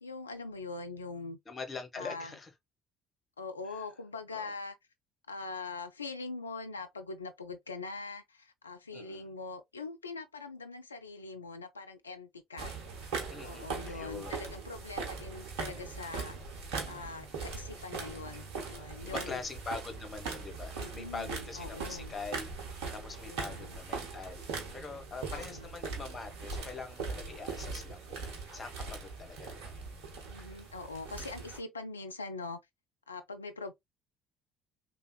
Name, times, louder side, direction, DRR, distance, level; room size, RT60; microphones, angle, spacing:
voice 1, 0.0-1.4 2.0-2.3 3.4-4.8 5.3-12.7 13.4-16.4 16.9-19.4 20.7-22.1 23.3-23.7 25.3-25.7 30.3-32.6 33.1-33.7, left 3 dB, 90° left, 0.3 m, -42 dB
voice 2, 1.5-2.5 3.6-3.9 4.3-4.5 8.9-9.3 13.3-14.5 19.0-28.2 28.5-29.8, left 4 dB, 30° left, 1.0 m, -43 dB
sound 1, 12.6-31.6, right 4 dB, 70° right, 1.0 m, -41 dB
3.4 x 2.1 x 2.2 m
figure-of-eight pair, 55°, 0 cm